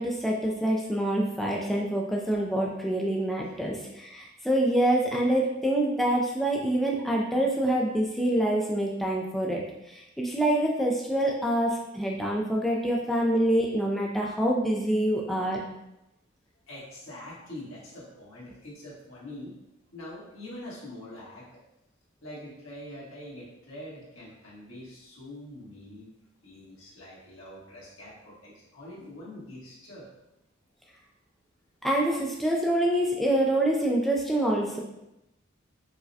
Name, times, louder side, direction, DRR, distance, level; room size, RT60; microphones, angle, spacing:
voice 1, 0.0-15.6 31.8-34.8, right 1 dB, ahead, -2 dB, 0.3 m, -26 dB
voice 2, 16.7-19.5 19.9-21.5 22.2-26.1 26.4-30.1, left 1 dB, 75° left, -7 dB, 1.4 m, -44 dB
4.6 x 2.1 x 2.6 m, 0.88 s
head